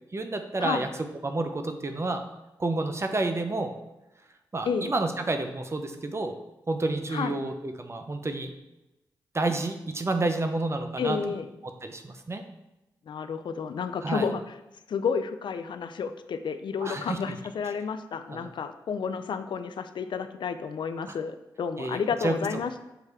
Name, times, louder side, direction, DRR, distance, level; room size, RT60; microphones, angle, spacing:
voice 1, 0.1-0.9 1.2-2.2 2.6-3.7 4.5-6.4 6.7-8.5 9.3-11.4 11.6-12.4 14.0-14.3 16.8-17.4 18.3-18.5 21.1-21.2 21.8-22.4, right 2 dB, 30° right, 6 dB, 0.8 m, -30 dB
voice 2, 11.0-11.5 13.1-14.4 14.9-22.8, left 6 dB, 65° left, 10 dB, 0.4 m, -31 dB
7.0 x 3.2 x 4.6 m, 1.0 s
supercardioid pair, 45°, 8 cm